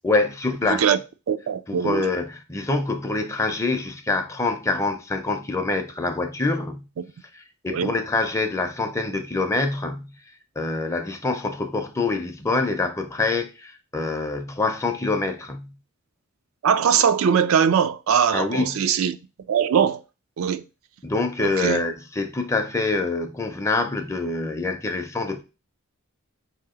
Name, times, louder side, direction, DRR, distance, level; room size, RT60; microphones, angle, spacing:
voice 1, 0.0-0.9 1.7-6.9 7.3-10.1 10.6-15.7 18.3-18.8 21.0-25.4, left 3 dB, 15° left, 0.5 m, -25 dB
voice 2, 0.7-1.0 1.3-2.1 7.7-8.0 16.6-19.2 19.5-20.0 20.4-20.6 21.4-21.8, right 7 dB, 80° right, 0.4 m, -21 dB
4.7 x 2.8 x 3.6 m
head